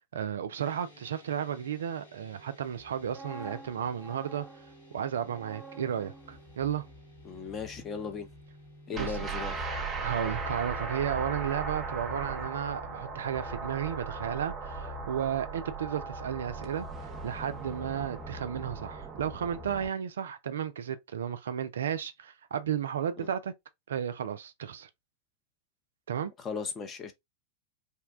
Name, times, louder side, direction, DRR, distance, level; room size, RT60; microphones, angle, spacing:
voice 1, 0.1-4.5 4.9-6.8 8.9-9.3 10.0-16.9 17.2-23.5 23.9-24.9 26.1-26.3, right 9 dB, 65° right, 0.3 m, -33 dB
sound 1, 0.6-18.9, equal, 70° left, 1.0 m, -54 dB
sound 2, 2.8-8.7 9.0-9.3, right 2 dB, 5° left, 0.9 m, -50 dB
voice 2, 7.2-8.3 8.9-9.5 23.2-23.3 26.4-27.1, left 6 dB, 25° left, 0.5 m, -37 dB
sound 3, 8.9-19.9, right 4 dB, 20° right, 0.6 m, -37 dB
2.7 x 2.1 x 2.3 m
figure-of-eight pair, 90°, 0 cm